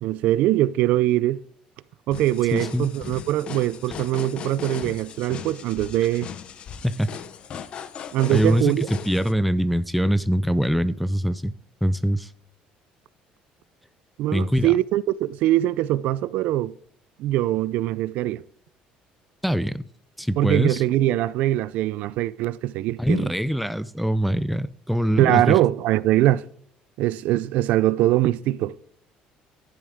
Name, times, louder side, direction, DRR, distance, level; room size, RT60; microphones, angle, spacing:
voice 1, 0.0-1.4 2.1-6.3 8.1-8.9 14.2-16.7 17.2-18.4 20.4-23.3 25.2-26.4 27.0-28.8, right 14 dB, 65° right, 0.4 m, -22 dB
sound 1, 2.1-9.3, left 8 dB, 40° left, 0.7 m, -37 dB
voice 2, 2.5-2.9 6.8-7.1 8.3-11.5 11.8-12.3 14.3-14.7 19.4-19.9 20.2-20.8 23.0-25.6, equal, ahead, 0.3 m, -23 dB
12.0 x 10.5 x 3.5 m
cardioid pair, 165°, 3 cm